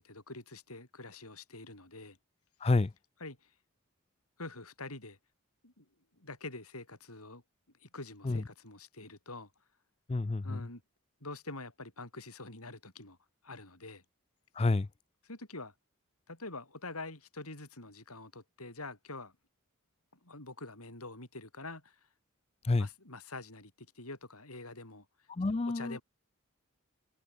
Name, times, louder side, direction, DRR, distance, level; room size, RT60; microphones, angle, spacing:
voice 1, 0.0-2.2 3.2-3.5 4.4-5.2 5.6-5.9 6.1-7.4 7.8-9.5 10.4-10.8 11.2-13.2 13.4-14.0 15.2-15.7 16.3-19.3 20.2-22.0 22.8-25.1 25.6-26.0, left 2 dB, 85° left, 7.7 m, -46 dB
voice 2, 2.6-2.9 8.2-8.4 10.1-10.6 14.6-14.9 22.6-22.9 25.3-26.0, left 3 dB, 25° left, 0.4 m, -29 dB
head